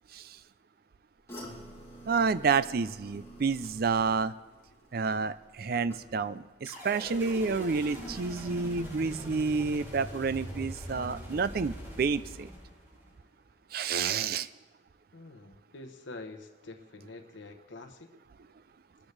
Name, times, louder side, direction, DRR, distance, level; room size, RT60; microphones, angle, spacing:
sound 1, 1.3-6.5 6.8-7.3 7.7-7.8, equal, 15° left, 2.7 m, -49 dB
voice 1, 2.1-4.3 4.9-12.5 13.7-14.5, right 5 dB, 55° right, 15 dB, 0.4 m, -29 dB
sound 2, 6.7-13.1, equal, 15° right, 3.0 m, -42 dB
voice 2, 15.1-18.1, left 2 dB, 85° left, 6 dB, 1.0 m, -46 dB
22.0 x 13.5 x 3.3 m, 1.2 s
head